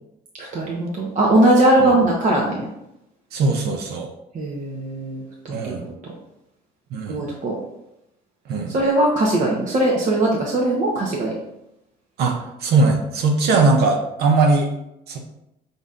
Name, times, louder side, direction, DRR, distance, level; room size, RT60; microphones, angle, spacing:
voice 1, 0.4-2.7 4.3-5.9 7.1-7.5 8.7-11.3, right 1 dB, 50° right, -3 dB, 0.9 m, -20 dB
voice 2, 3.3-4.1 5.5-5.8 6.9-7.2 8.5-8.7 12.2-14.7 15.1-15.2, right 3 dB, 75° right, 2 dB, 0.7 m, -19 dB
5.3 x 4.0 x 2.4 m, 0.85 s
cardioid pair, 110°, 17 cm